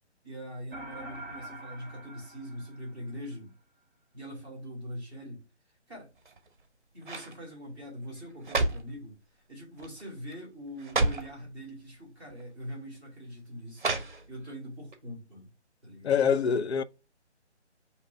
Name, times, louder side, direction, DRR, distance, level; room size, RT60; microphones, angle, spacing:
voice 1, 0.2-3.5 4.1-5.4 5.9-6.1 6.9-14.0 14.3-15.5 15.8-16.1, equal, 10° left, 1.6 m, -42 dB
sound 1, 0.7-3.3, right 1 dB, 15° right, 1.9 m, -45 dB
sound 2, 6.2-6.6 7.0-7.4 8.2-9.0 9.8-10.0 10.3-10.4 10.8-11.4 12.3-12.4 13.8-14.5 14.9-15.0, right 2 dB, 45° right, 0.7 m, -30 dB
voice 2, 16.0-16.8, left 7 dB, 65° left, 0.5 m, -25 dB
5.3 x 2.9 x 3.3 m
hypercardioid pair, 180°, 35 cm